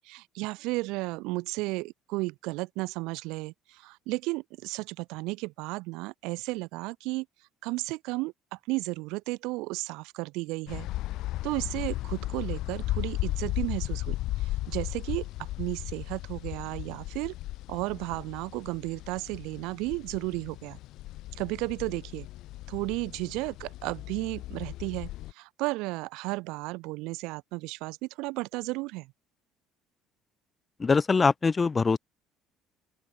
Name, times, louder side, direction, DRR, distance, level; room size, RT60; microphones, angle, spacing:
voice 1, 0.0-7.3 7.6-10.9 11.4-17.3 17.7-20.8 21.3-22.3 22.7-29.1, right 23 dB, 85° right, 3.9 m, -34 dB
sound 1, 10.7-25.3, left 16 dB, 65° left, 1.5 m, -36 dB
voice 2, 30.8-32.0, left 4 dB, 20° left, 0.6 m, -23 dB
open air
cardioid pair, 150°, 0 cm